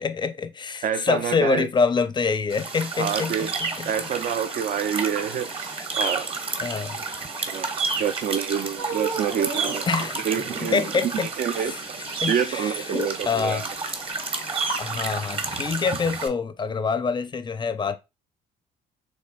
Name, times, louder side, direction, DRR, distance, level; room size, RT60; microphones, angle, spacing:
voice 1, 0.0-3.9 6.6-7.0 9.9-10.3 10.6-11.8 12.2-13.7 14.8-18.0, left 5 dB, 25° left, 0.5 m, -26 dB
voice 2, 0.8-1.7 3.0-3.5 3.8-6.3 7.5-9.9 10.2-10.8 11.4-13.6, right 8 dB, 50° right, 0.4 m, -27 dB
sound 1, 2.5-16.3, right 4 dB, 35° right, 0.9 m, -31 dB
sound 2, 8.8-9.9 10.3-11.2 12.7-13.1 13.8-13.9, right 5 dB, 70° right, 1.5 m, -33 dB
5.4 x 3.3 x 2.3 m
cardioid pair, 110°, 17 cm